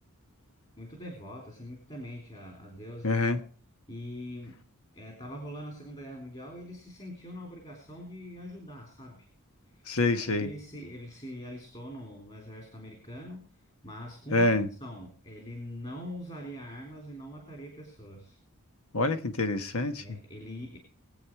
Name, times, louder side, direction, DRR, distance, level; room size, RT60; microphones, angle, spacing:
voice 1, 0.8-3.4 3.9-4.6 4.9-9.3 9.7-13.6 13.8-14.5 14.8-18.4 20.0-20.8, equal, 30° left, 3.6 m, -43 dB
voice 2, 3.0-3.4 9.9-10.5 14.3-14.7 18.9-20.2, left 2 dB, 75° left, 1.3 m, -26 dB
21.5 x 8.6 x 4.7 m
head